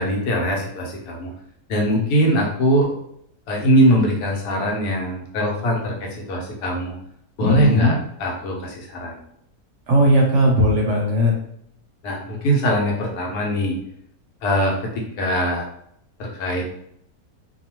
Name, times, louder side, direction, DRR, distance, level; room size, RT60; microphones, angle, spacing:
voice 1, 0.0-1.3 1.7-2.9 3.5-6.9 7.4-9.2 12.0-13.8 14.4-15.6 16.2-16.6, equal, 90° left, 0 dB, 1.2 m, -21 dB
voice 2, 7.4-8.0 9.9-11.3, equal, 65° right, -1 dB, 0.8 m, -17 dB
2.7 x 2.3 x 2.9 m, 0.71 s
omnidirectional pair, 1.6 m